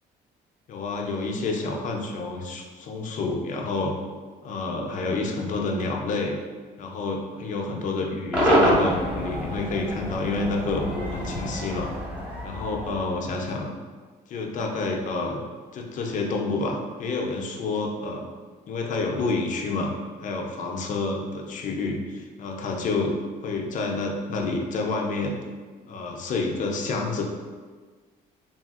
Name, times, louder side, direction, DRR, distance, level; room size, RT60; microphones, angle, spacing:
voice 1, 0.7-3.9 4.4-6.4 6.8-11.9 12.4-13.7 14.3-15.4 15.7-18.3 18.7-19.9 20.2-23.1 23.4-25.4 25.9-27.2, left 3 dB, 50° left, 1 dB, 0.5 m, -29 dB
Cheering / Crowd / Fireworks, 8.3-13.6, equal, 10° right, 0.9 m, -26 dB
3.3 x 2.3 x 2.4 m, 1.5 s
cardioid pair, 110°, 17 cm